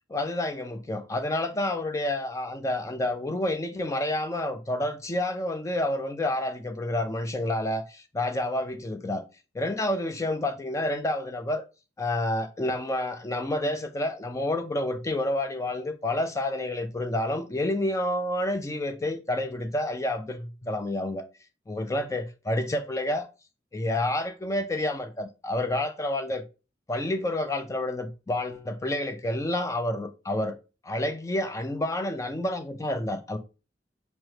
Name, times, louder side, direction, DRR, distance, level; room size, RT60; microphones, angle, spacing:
voice 1, 0.1-9.3 9.5-11.6 12.0-21.2 21.7-23.3 23.7-26.4 26.9-30.6 30.8-33.4, left 1 dB, 15° left, 0.3 m, -29 dB
5.7 x 2.1 x 3.1 m
head